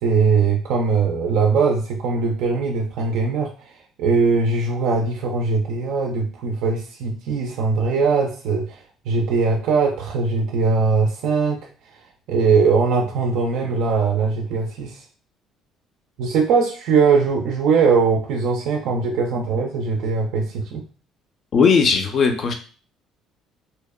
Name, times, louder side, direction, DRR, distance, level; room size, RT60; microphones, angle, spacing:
voice 1, 0.0-3.5 4.0-11.6 12.3-15.0 16.2-20.8, right 4 dB, 75° right, 2 dB, 0.3 m, -20 dB
voice 2, 21.5-22.5, left 5 dB, 50° left, 5 dB, 0.4 m, -17 dB
2.8 x 2.0 x 2.2 m, 0.40 s
cardioid pair, 110°, 0 cm